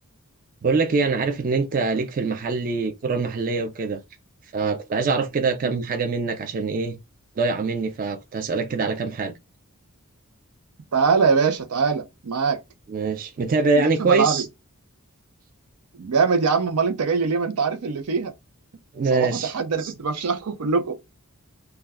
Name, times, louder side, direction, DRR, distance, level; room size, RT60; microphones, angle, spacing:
voice 1, 0.6-4.0 4.5-7.0 7.4-9.3 12.9-14.5 18.9-19.5 19.8-19.9, right 4 dB, 40° right, 0.3 m, -24 dB
voice 2, 10.9-12.6 13.7-14.4 15.9-18.3 19.1-21.0, right 5 dB, 85° right, 0.6 m, -23 dB
2.3 x 2.2 x 3.4 m
head